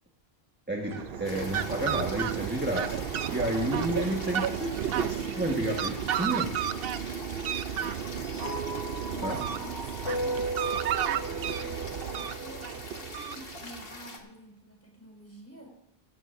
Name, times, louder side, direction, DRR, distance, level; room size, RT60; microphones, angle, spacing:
voice 1, 0.7-6.5 9.2-9.4, right 1 dB, 10° right, -1 dB, 1.4 m, -31 dB
Fowl, 0.8-13.8, right 9 dB, 70° right, 0.8 m, -32 dB
sound 1, 1.2-14.2, left 3 dB, 65° left, 1.9 m, -44 dB
sound 2, 8.4-12.9, right 1 dB, 85° left, 1.8 m, -36 dB
voice 2, 9.1-15.7, right 2 dB, 15° left, -2 dB, 5.0 m, -49 dB
17.0 x 15.0 x 2.6 m, 0.87 s
omnidirectional pair, 1.0 m